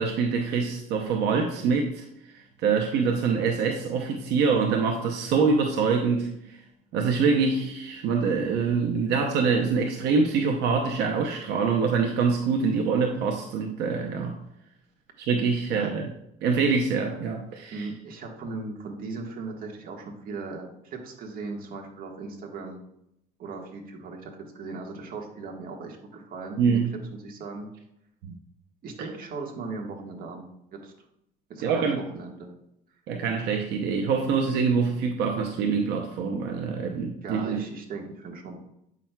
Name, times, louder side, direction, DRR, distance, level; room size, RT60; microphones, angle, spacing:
voice 1, 0.0-2.0 2.3-6.6 6.9-14.3 15.2-16.1 16.4-17.9 26.6-26.9 31.6-32.0 33.1-37.6, right 5 dB, 90° right, 3 dB, 0.8 m, -25 dB
voice 2, 17.7-22.8 23.4-26.8 27.2-27.7 28.8-30.9 31.5-32.5 37.2-38.6, right 3 dB, 60° right, 2 dB, 1.5 m, -38 dB
8.2 x 5.9 x 2.3 m, 0.80 s
cardioid pair, 110°, 17 cm